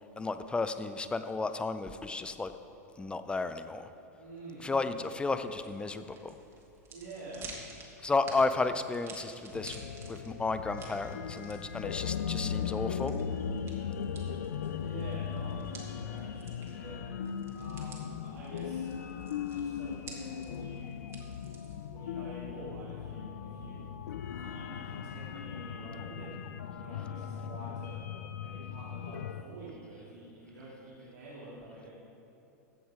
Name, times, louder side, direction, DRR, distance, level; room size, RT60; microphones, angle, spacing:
voice 1, 0.2-2.5 3.0-3.9 4.6-6.3 8.0-9.8 10.1-13.1, left 3 dB, 10° left, 10 dB, 0.6 m, -33 dB
voice 2, 4.2-4.7 6.9-7.5 14.8-17.1 17.5-18.9 19.4-20.9 21.9-23.8 24.4-26.5 26.8-28.1 28.4-31.9, right 2 dB, 80° right, -8 dB, 2.9 m, -47 dB
sound 1, 5.2-21.9, right 3 dB, 30° right, 2.4 m, -52 dB
sound 2, 9.5-29.4, left 7 dB, 75° left, 0.6 m, -38 dB
15.0 x 7.9 x 5.0 m, 2.8 s
hypercardioid pair, 105°, 9 cm